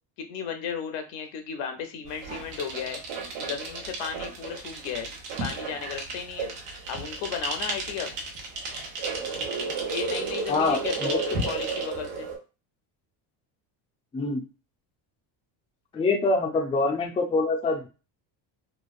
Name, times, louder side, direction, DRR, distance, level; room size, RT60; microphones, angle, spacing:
voice 1, 0.2-3.0 3.4-5.1 5.4-6.5 6.9-8.1 9.8-12.3, left 7 dB, 90° left, 5 dB, 0.8 m, -34 dB
sound 1, 2.1-12.4, right 3 dB, 75° right, 1.1 m, -33 dB
voice 2, 10.5-11.4 14.1-14.4 15.9-17.9, left 3 dB, 15° left, 2 dB, 0.3 m, -25 dB
3.1 x 2.3 x 2.4 m, 0.32 s
cardioid pair, 115°, 49 cm